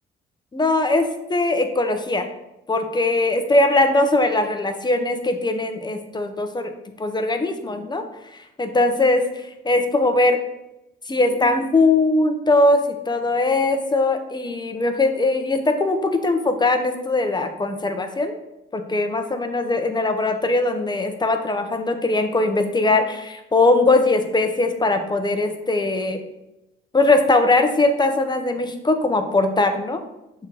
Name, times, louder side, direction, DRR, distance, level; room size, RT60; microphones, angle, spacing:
voice 1, 0.5-2.3 2.7-6.7 7.0-8.0 8.6-10.4 11.1-12.8 13.1-18.3 18.7-26.2 26.9-30.0, left 2 dB, 20° left, 6 dB, 0.9 m, -20 dB
6.3 x 3.9 x 4.7 m, 0.91 s
cardioid pair, 90°, 20 cm